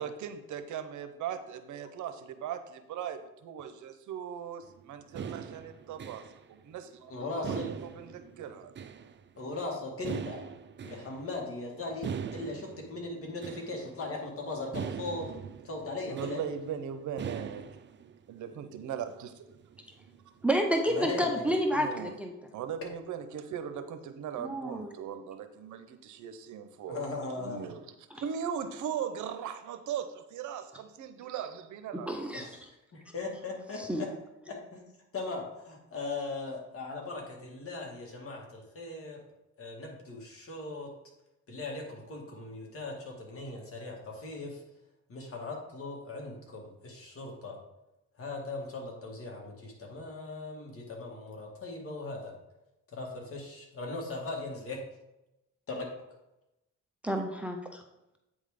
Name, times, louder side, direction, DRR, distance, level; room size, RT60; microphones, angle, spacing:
voice 1, 0.0-8.7 16.1-17.7 18.3-19.4 21.7-22.1 22.5-27.0 27.4-27.9 28.1-32.2, right 8 dB, 75° right, 9 dB, 0.8 m, -39 dB
sound 1, 4.6-6.4 6.7-6.8 7.4-9.4 10.0-11.4 11.9-13.9 14.2-14.3 14.5-16.7 17.2-18.2 18.5-18.6 19.0-19.2 19.5-20.5, right 7 dB, 40° right, 0.5 m, -41 dB
voice 2, 7.1-7.7 9.4-10.4 10.8-15.3 15.6-16.4 20.9-21.6 26.9-27.7 32.3-32.6 32.9-34.1 34.5-34.8 35.1-39.2 39.6-40.9 41.5-44.6 45.1-47.6 48.2-52.3 52.9-54.8 55.7-55.9, left 3 dB, 50° left, 0 dB, 2.1 m, -39 dB
voice 3, 20.4-22.3 24.4-24.9 31.9-32.5 33.9-34.0 57.0-57.8, equal, 5° right, 4 dB, 0.8 m, -29 dB
8.5 x 3.6 x 5.1 m, 0.93 s
cardioid pair, 90°, 30 cm